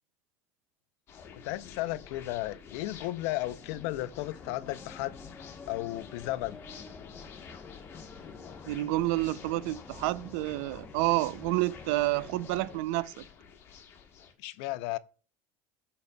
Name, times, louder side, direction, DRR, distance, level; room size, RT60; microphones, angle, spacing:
sound 1, 1.1-14.3, left 7 dB, 40° left, 1.2 m, -50 dB
voice 1, 1.3-5.2 5.7-6.6 14.4-15.0, left 17 dB, 75° left, 0.4 m, -34 dB
sound 2, 3.4-12.8, left 4 dB, 20° left, 0.8 m, -49 dB
voice 2, 8.7-13.2, right 18 dB, 75° right, 0.3 m, -29 dB
12.0 x 4.0 x 2.2 m
cardioid pair, 150°, 7 cm